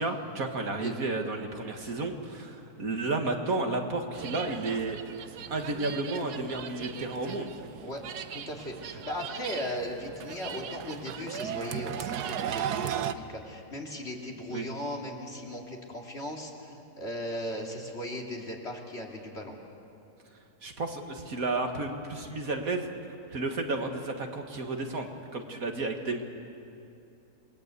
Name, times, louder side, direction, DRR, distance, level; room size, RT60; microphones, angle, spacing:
voice 1, 0.0-5.0 5.5-7.6 14.5-14.7 20.6-22.9 23.3-26.3, right 2 dB, 55° right, 4 dB, 2.0 m, -32 dB
sound 1, 4.1-13.1, right 9 dB, 75° right, 1.4 m, -37 dB
voice 2, 8.3-19.6, left 1 dB, 40° left, 0 dB, 2.9 m, -37 dB
28.5 x 21.5 x 8.2 m, 2.7 s
omnidirectional pair, 1.8 m